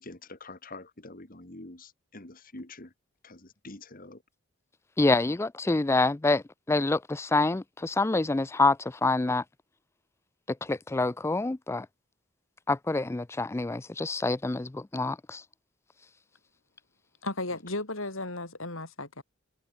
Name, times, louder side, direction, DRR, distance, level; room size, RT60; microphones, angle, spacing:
voice 1, 0.0-2.9 3.2-4.2 5.3-5.4, left 2 dB, 40° left, 2.3 m, -46 dB
voice 2, 5.0-9.4 10.6-11.9 12.7-15.4, left 2 dB, 10° left, 0.3 m, -26 dB
voice 3, 17.2-19.2, left 2 dB, 65° left, 5.5 m, -35 dB
head